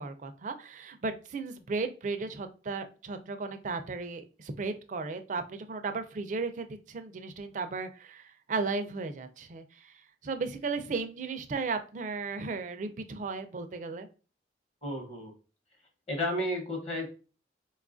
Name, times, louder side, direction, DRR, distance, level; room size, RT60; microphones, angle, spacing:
voice 1, 0.0-9.9 10.2-14.1, right 4 dB, 45° right, 8 dB, 0.4 m, -35 dB
voice 2, 14.8-15.3 16.1-17.1, left 1 dB, 30° left, 1 dB, 0.8 m, -32 dB
4.3 x 2.3 x 2.4 m, 0.35 s
head